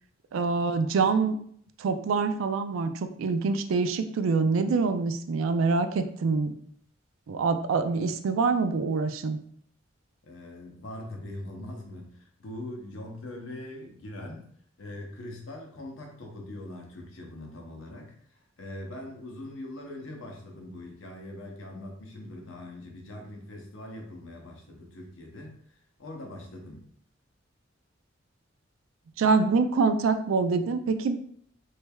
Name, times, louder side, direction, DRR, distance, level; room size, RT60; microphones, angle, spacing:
voice 1, 0.3-1.4 1.8-6.5 7.3-9.4 29.2-31.2, right 4 dB, 90° right, 9 dB, 0.4 m, -25 dB
voice 2, 10.2-14.5 14.8-26.8, left 1 dB, 75° left, 1 dB, 0.7 m, -42 dB
3.2 x 3.1 x 2.2 m, 0.63 s
head